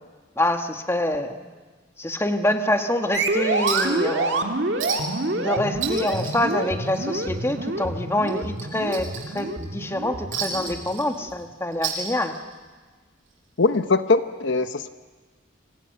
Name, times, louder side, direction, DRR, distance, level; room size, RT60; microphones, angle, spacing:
voice 1, 0.4-1.4 2.0-4.5 5.3-9.1 9.3-12.3, left 1 dB, 15° left, 5 dB, 1.7 m, -26 dB
sound 1, 3.1-11.2, right 2 dB, 60° right, 2.2 m, -27 dB
Chink clink, 3.7-4.0 4.3-4.4 4.8-5.3 5.6-7.3 7.6-7.8 8.2-9.6 10.3-11.4 11.7-12.6 13.7-13.8, right 7 dB, 75° right, 7.3 m, -32 dB
voice 2, 13.6-14.9, left 3 dB, 65° left, 10 dB, 0.9 m, -21 dB
27.5 x 26.0 x 6.8 m, 1.4 s
head